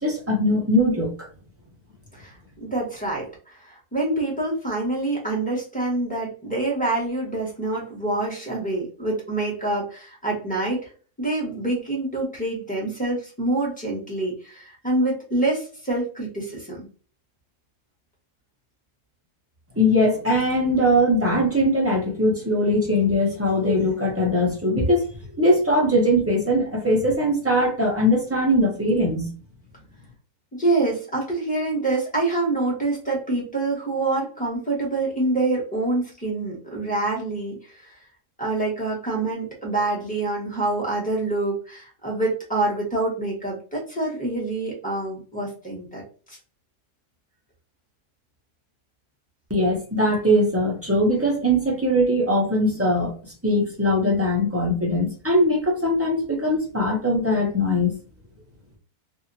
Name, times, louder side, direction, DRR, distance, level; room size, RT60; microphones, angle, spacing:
voice 1, 0.0-1.1 19.8-25.1 25.4-29.3 49.5-57.9, equal, 15° right, -2 dB, 0.5 m, -21 dB
voice 2, 2.6-10.9 11.2-16.9 30.6-37.9 38.4-46.0 46.3-46.4, right 2 dB, 5° left, -3 dB, 1.1 m, -26 dB
2.8 x 2.6 x 2.5 m, 0.39 s
omnidirectional pair, 1.7 m